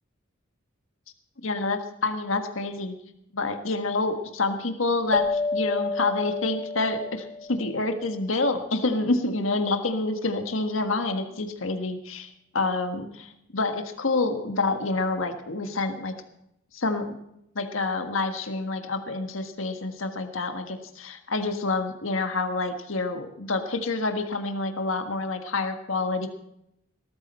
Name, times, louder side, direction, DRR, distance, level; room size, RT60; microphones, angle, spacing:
voice 1, 1.4-2.9 3.3-16.1 16.7-17.1 17.5-26.3, left 3 dB, 80° left, 6 dB, 1.6 m, -28 dB
sound 1, 5.1-8.1, left 3 dB, 20° left, 0.9 m, -30 dB
19.5 x 13.0 x 4.4 m, 0.80 s
head